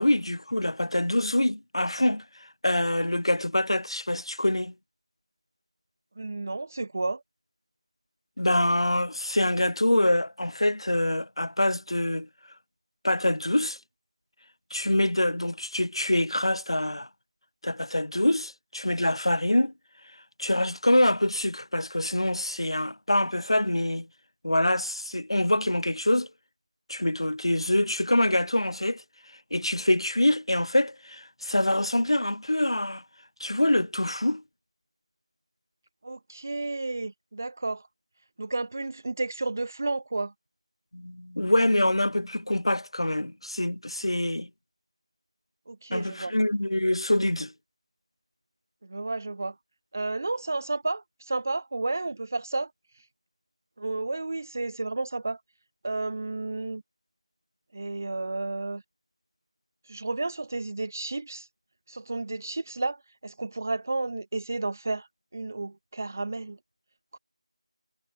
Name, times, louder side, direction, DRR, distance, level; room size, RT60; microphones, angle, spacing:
voice 1, 0.0-2.2 2.6-4.7 8.4-12.3 13.0-13.8 14.7-17.1 17.6-19.7 20.4-24.1 24.4-26.3 26.9-29.0 29.5-33.0 33.4-34.4 40.9-44.5 45.9-47.5, left 1 dB, 50° left, 5.2 m, -25 dB
voice 2, 6.2-7.2 36.0-37.9 38.4-40.3 45.7-46.3 48.8-49.5 49.9-52.7 53.8-55.4 55.8-56.8 57.7-58.8 59.9-61.5 61.9-65.1 65.3-66.6 67.1-67.2, right 2 dB, 25° right, 1.6 m, -32 dB
figure-of-eight pair, 170°, 3 cm